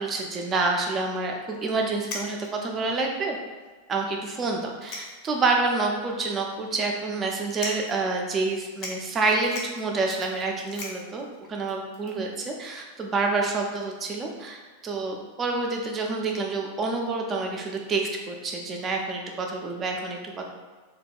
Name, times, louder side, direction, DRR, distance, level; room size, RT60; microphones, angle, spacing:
voice 1, 0.0-3.4 3.9-20.5, right 3 dB, 25° right, 1 dB, 0.4 m, -28 dB
sound 1, 1.5-1.6 2.0-2.7 3.3-3.4 3.7-3.8 4.6-5.5 5.9-6.0 6.7-7.0 7.5-8.0 8.4-8.5 8.7-12.4, left 2 dB, 40° left, 0.6 m, -39 dB
2.3 x 2.2 x 3.5 m, 1.4 s
figure-of-eight pair, 90°, 0 cm